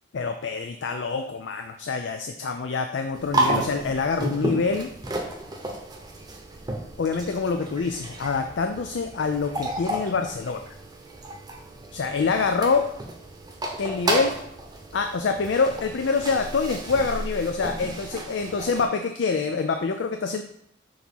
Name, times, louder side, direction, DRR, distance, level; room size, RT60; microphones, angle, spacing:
voice 1, 0.1-4.9 7.0-10.7 11.9-12.9 13.8-14.3 14.9-20.4, left 4 dB, 65° left, 6 dB, 0.4 m, -26 dB
sound 1, 3.1-18.9, right 1 dB, 20° right, 0.8 m, -32 dB
6.3 x 3.0 x 5.3 m, 0.72 s
head